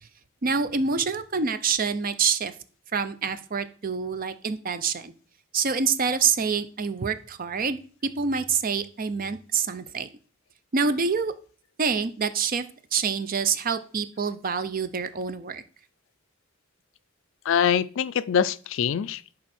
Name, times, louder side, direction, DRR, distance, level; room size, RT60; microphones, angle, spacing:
voice 1, 0.4-2.5 2.9-5.1 5.5-10.1 10.7-11.3 11.8-12.6 12.9-15.6, right 5 dB, 40° right, 0.6 m, -26 dB
voice 2, 17.5-19.4, left 8 dB, 65° left, 0.4 m, -24 dB
10.5 x 3.7 x 4.3 m
head